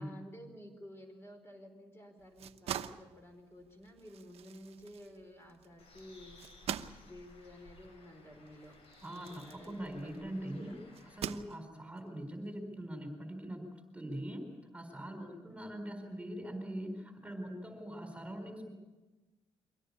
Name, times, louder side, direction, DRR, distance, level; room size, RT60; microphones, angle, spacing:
voice 1, 0.0-6.4 6.9-8.8 9.1-10.8 11.5-11.8 15.1-15.5, equal, 25° left, 4 dB, 4.8 m, -52 dB
sound 1, 2.2-10.3 10.9-12.0, right 10 dB, 80° right, 1.0 m, -44 dB
Bird, 5.8-11.2, left 2 dB, 70° left, 7.2 m, -58 dB
voice 2, 9.0-10.7 11.1-13.6 13.9-14.5 14.7-18.7, right 1 dB, 10° right, 5 dB, 4.3 m, -42 dB
24.0 x 17.5 x 8.6 m, 1.2 s
cardioid pair, 110°, 10 cm